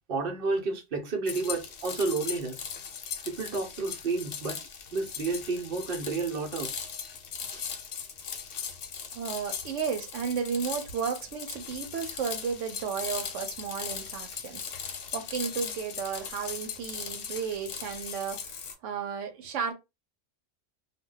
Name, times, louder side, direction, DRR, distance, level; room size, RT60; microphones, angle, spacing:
voice 1, 0.1-2.6 3.2-4.6 4.9-6.7 7.5-7.6, right 3 dB, 55° right, 0.9 m, -31 dB
sound 1, 1.3-18.7, left 7 dB, 85° left, 1.0 m, -39 dB
voice 2, 9.1-19.7, right 6 dB, 85° right, 0.9 m, -34 dB
2.2 x 2.2 x 3.7 m
omnidirectional pair, 1.2 m